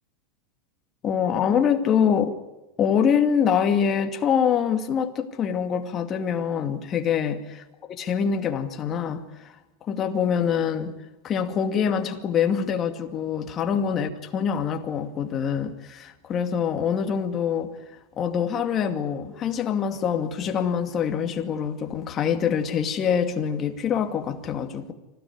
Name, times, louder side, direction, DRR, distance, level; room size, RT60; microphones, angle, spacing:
voice 1, 1.0-2.4 2.8-7.4 7.9-9.2 9.9-10.9 11.2-17.7 18.2-24.9, left 7 dB, 30° left, 6 dB, 2.4 m, -25 dB
26.0 x 16.5 x 9.7 m, 1.0 s
supercardioid pair, 150°, 0 cm